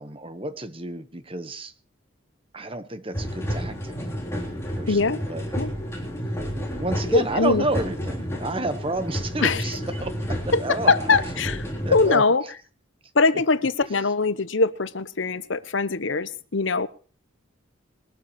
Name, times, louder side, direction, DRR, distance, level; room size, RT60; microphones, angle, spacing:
voice 1, 0.0-1.7 2.5-4.0 4.7-5.4 6.5-10.9 11.8-12.2, right 2 dB, 25° right, 10 dB, 1.2 m, -30 dB
sound 1, 3.1-12.1, equal, 15° left, 3.3 m, -31 dB
voice 2, 4.9-5.2 5.6-5.7 7.1-7.6 9.4-9.8 10.5-12.4 13.1-16.9, left 4 dB, 70° left, 14 dB, 0.9 m, -22 dB
21.5 x 12.5 x 3.1 m, 0.38 s
head